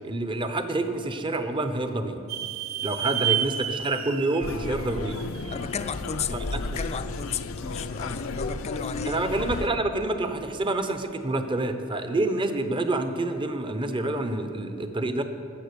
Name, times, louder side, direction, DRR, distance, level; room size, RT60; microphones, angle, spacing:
voice 1, 0.0-2.2 2.8-5.2 6.3-6.8 9.0-15.2, right 2 dB, 25° right, 8 dB, 0.7 m, -28 dB
sound 1, 2.3-5.8, right 10 dB, 75° right, 0.7 m, -30 dB
sound 2, 4.4-9.7, left 3 dB, 85° left, 0.6 m, -33 dB
voice 2, 5.5-9.2, left 6 dB, 30° left, 11 dB, 0.4 m, -34 dB
14.5 x 7.5 x 6.9 m, 2.5 s
head